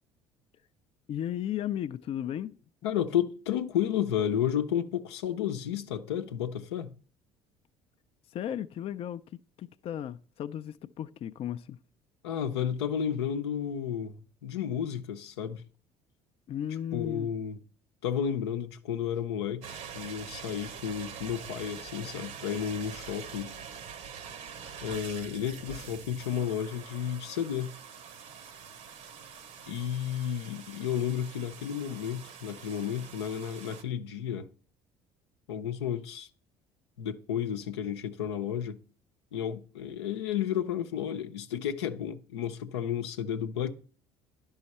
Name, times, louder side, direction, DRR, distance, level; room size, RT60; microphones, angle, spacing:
voice 1, 1.1-2.6 8.3-9.2 9.6-11.8 16.5-17.3, left 10 dB, 45° left, 0.4 m, -35 dB
voice 2, 2.8-6.9 12.2-15.6 16.9-17.6 18.0-23.6 24.8-27.7 29.7-34.5 35.5-36.3 37.0-38.8 39.3-43.7, left 9 dB, 85° left, 0.7 m, -32 dB
sound 1, 19.6-33.8, right 7 dB, 65° right, 1.0 m, -45 dB
11.0 x 5.6 x 4.2 m
hypercardioid pair, 65°, 13 cm